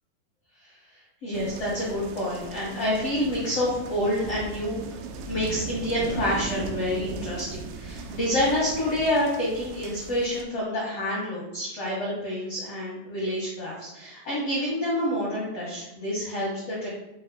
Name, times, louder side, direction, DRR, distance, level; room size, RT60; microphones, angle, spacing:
voice 1, 1.2-5.0 5.3-16.9, left 1 dB, 75° left, -6 dB, 1.4 m, -28 dB
sound 1, 1.3-10.4, right 5 dB, 90° right, 2.9 m, -38 dB
8.3 x 5.5 x 2.3 m, 0.92 s
omnidirectional pair, 5.1 m